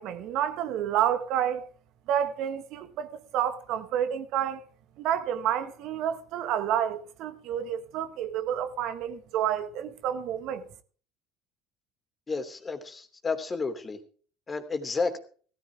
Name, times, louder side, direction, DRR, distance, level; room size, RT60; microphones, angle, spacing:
voice 1, 0.0-1.7 2.1-4.6 5.0-10.6, right 10 dB, 60° right, 1.5 m, -29 dB
voice 2, 12.3-14.0 14.5-15.2, left 4 dB, 25° left, 3.0 m, -31 dB
16.0 x 14.5 x 3.5 m
hypercardioid pair, 75°, 0 cm